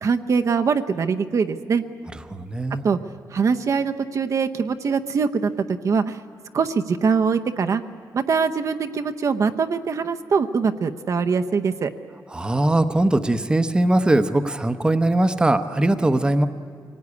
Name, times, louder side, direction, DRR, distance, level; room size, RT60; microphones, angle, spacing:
voice 1, 0.0-1.8 2.8-3.0 3.3-5.5 5.8-6.2 6.5-7.8 8.1-11.9, right 5 dB, 50° right, 8 dB, 0.8 m, -22 dB
voice 2, 2.3-2.9 12.3-16.5, right 1 dB, 15° right, 10 dB, 0.8 m, -20 dB
24.0 x 18.0 x 9.6 m, 2.1 s
cardioid pair, 130°, 7 cm